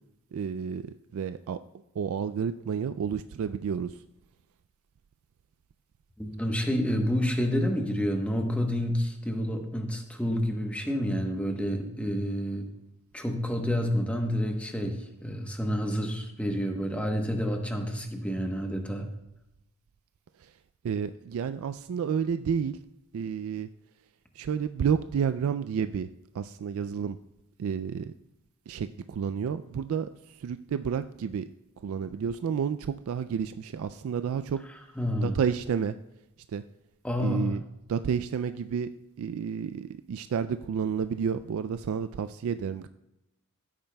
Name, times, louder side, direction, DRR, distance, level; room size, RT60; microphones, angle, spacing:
voice 1, 0.3-0.8 1.1-1.6 2.0-4.0 20.4-20.5 20.8-22.8 23.1-23.7 24.4-26.1 26.3-27.2 27.6-28.1 28.7-31.5 31.8-34.6 35.2-35.9 36.5-36.6 37.2-37.6 37.9-38.9 39.2-42.9, right 7 dB, 65° right, 11 dB, 0.3 m, -30 dB
voice 2, 6.2-12.7 13.1-19.1 35.0-35.4 37.0-37.5, equal, 5° left, 3 dB, 1.0 m, -29 dB
16.0 x 8.7 x 2.2 m, 0.90 s
head